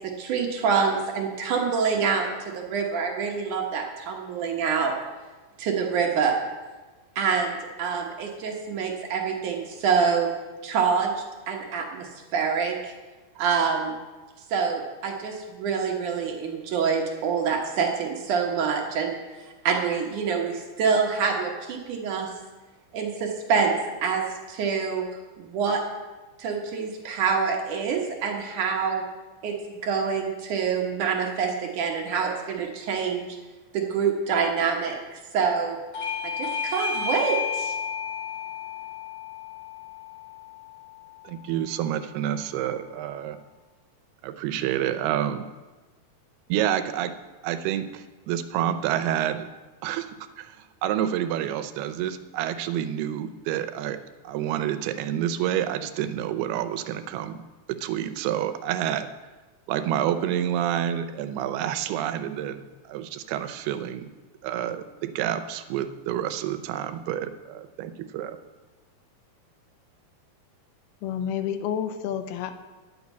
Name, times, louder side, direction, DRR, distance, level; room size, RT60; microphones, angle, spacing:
voice 1, 0.0-5.0 5.6-6.3 7.2-10.3 10.6-11.1 11.5-12.8 13.4-14.0 14.5-19.2 19.6-22.3 22.9-25.0 25.4-25.8 26.4-29.0 29.4-29.6 29.8-33.3 33.7-35.8 36.2-37.8, right 6 dB, 65° right, 1 dB, 2.4 m, -26 dB
Bell / Doorbell, 35.9-41.1, left 5 dB, 45° left, 3.1 m, -32 dB
voice 2, 41.2-43.4 44.2-45.5 46.5-47.1 47.4-49.5 49.8-50.6 50.8-54.0 54.2-57.4 57.8-59.1 59.7-64.1 64.4-68.4, right 10 dB, 90° right, 10 dB, 2.7 m, -28 dB
voice 3, 71.0-72.6, left 9 dB, 85° left, 9 dB, 2.6 m, -29 dB
11.0 x 6.6 x 8.3 m, 1.2 s
omnidirectional pair, 4.5 m